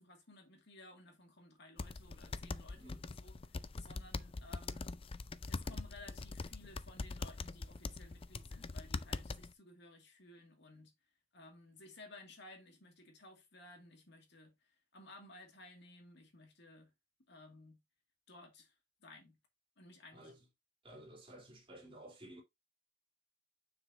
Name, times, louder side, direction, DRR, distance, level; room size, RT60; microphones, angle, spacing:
voice 1, 0.0-4.9 5.5-10.9 11.3-16.9 17.3-17.8 18.3-18.7 19.0-19.4 19.8-20.4, left 2 dB, 60° left, 2.3 m, -57 dB
sound 1, 1.8-9.5, left 3 dB, 30° left, 0.4 m, -43 dB
voice 2, 2.7-3.1 20.1-20.4 20.8-22.4, right 1 dB, 25° right, 3.2 m, -54 dB
7.2 x 6.0 x 2.8 m
head